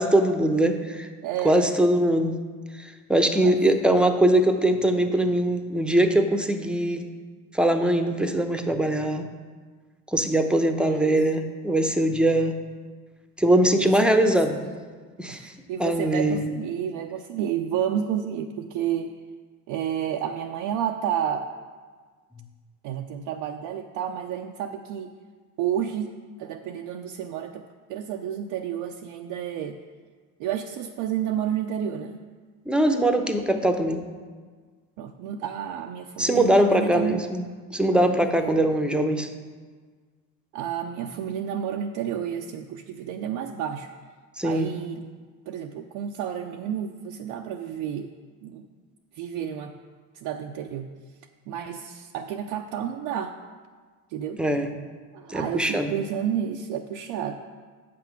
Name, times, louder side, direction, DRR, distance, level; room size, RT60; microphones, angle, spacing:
voice 1, 0.0-1.1 1.4-2.4 2.8-7.1 7.5-9.3 10.1-12.5 13.4-14.6 15.2-15.5 15.8-16.5 32.7-34.0 36.2-39.3 44.4-44.7 54.4-54.7 55.3-55.9, right 1 dB, ahead, 6 dB, 0.8 m, -22 dB
voice 2, 1.2-1.7 3.4-3.6 10.8-11.2 13.7-14.3 15.3-19.1 19.7-21.5 22.8-25.1 25.6-29.8 30.4-32.3 35.0-37.2 37.9-38.7 40.5-43.9 44.4-45.0 45.5-48.1 48.4-48.7 49.1-49.7 50.1-50.9 51.5-53.3 54.1-54.4 55.1-57.4, right 9 dB, 60° right, 3 dB, 0.6 m, -31 dB
7.7 x 6.0 x 5.9 m, 1.5 s
hypercardioid pair, 70°, 45 cm